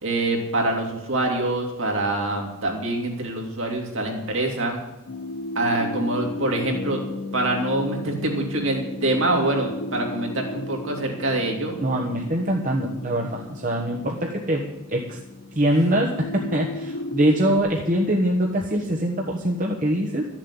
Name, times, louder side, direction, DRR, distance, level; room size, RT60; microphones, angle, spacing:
voice 1, 0.0-4.8 5.5-7.0 7.3-11.7, right 2 dB, 60° right, 1 dB, 2.9 m, -25 dB
sound 1, 5.1-17.6, left 2 dB, 70° left, 1.4 m, -35 dB
voice 2, 11.8-15.2 15.5-20.3, right 1 dB, 35° right, 0 dB, 1.3 m, -23 dB
13.0 x 7.4 x 9.8 m, 1.0 s
head